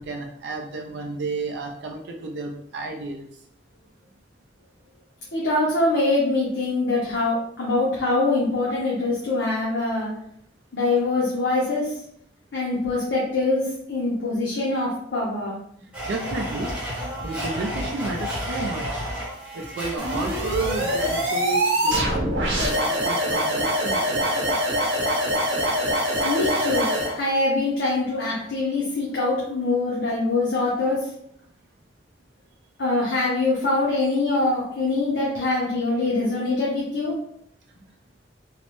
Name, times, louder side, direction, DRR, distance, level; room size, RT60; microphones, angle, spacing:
voice 1, 0.0-3.2 16.1-16.7 17.2-19.1 19.5-24.5, right 2 dB, 65° right, 1 dB, 0.4 m, -32 dB
voice 2, 5.3-10.1 10.7-11.9 12.5-15.5 26.2-26.9 27.1-31.1 32.8-37.1, left 2 dB, 75° left, -5 dB, 0.7 m, -23 dB
Domestic sounds home sounds, 15.9-21.6, equal, 5° right, 0.9 m, -31 dB
sound 1, 20.0-27.1, equal, 90° right, 0.8 m, -24 dB
3.1 x 2.0 x 2.9 m, 0.72 s
head